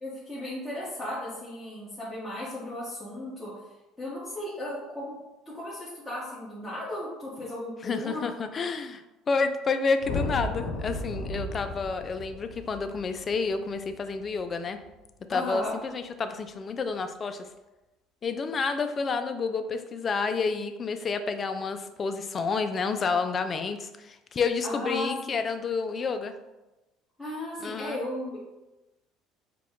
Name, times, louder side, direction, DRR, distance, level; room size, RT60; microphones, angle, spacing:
voice 1, 0.0-5.2 5.4-8.2 15.3-15.7 24.6-25.3 27.2-28.4, left 1 dB, 10° left, -10 dB, 1.2 m, -35 dB
voice 2, 7.8-14.8 15.3-17.5 18.2-26.3 27.6-28.0, left 4 dB, 35° left, 9 dB, 0.4 m, -29 dB
sound 1, 10.0-14.4, left 2 dB, 85° left, 0.8 m, -35 dB
4.7 x 2.3 x 3.6 m, 1.0 s
cardioid pair, 110°, 0 cm